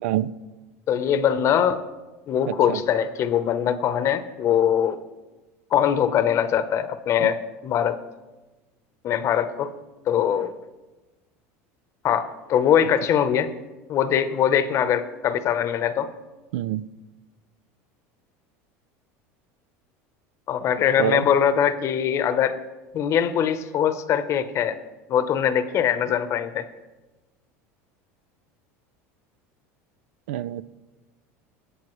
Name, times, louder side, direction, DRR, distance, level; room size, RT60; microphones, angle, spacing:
voice 1, 0.0-0.3 2.5-2.8 7.2-7.3 16.5-16.8 21.0-21.2 30.3-30.6, right 13 dB, 85° right, 18 dB, 0.4 m, -26 dB
voice 2, 0.9-1.8 2.3-5.0 5.7-8.0 9.0-9.7 10.1-10.5 12.0-13.5 13.9-16.1 20.5-22.6 22.9-24.7 25.1-26.6, left 9 dB, 45° left, 12 dB, 0.8 m, -22 dB
19.0 x 8.2 x 3.1 m, 1.2 s
supercardioid pair, 120°, 7 cm